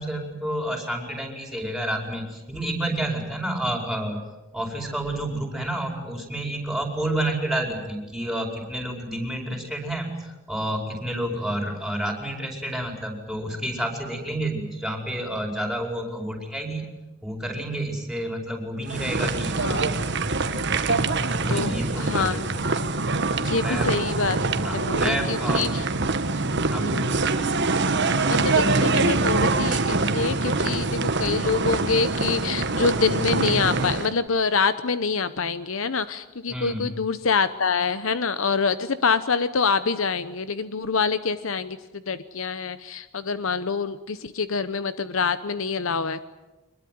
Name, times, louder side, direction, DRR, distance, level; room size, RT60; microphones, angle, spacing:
voice 1, 0.0-4.2 4.5-16.9 17.2-19.6 20.8-21.1 21.4-22.5 23.6-23.9 24.6-25.7 26.7-27.1 36.5-36.9, right 1 dB, ahead, 2 dB, 5.1 m, -30 dB
sound 1, 18.9-34.1, right 3 dB, 55° right, 1.4 m, -24 dB
voice 2, 19.6-19.9 21.5-22.5 23.4-24.4 24.7-25.9 26.7-27.0 28.0-46.2, left 5 dB, 70° left, 13 dB, 0.9 m, -26 dB
24.5 x 21.5 x 9.3 m, 1.1 s
head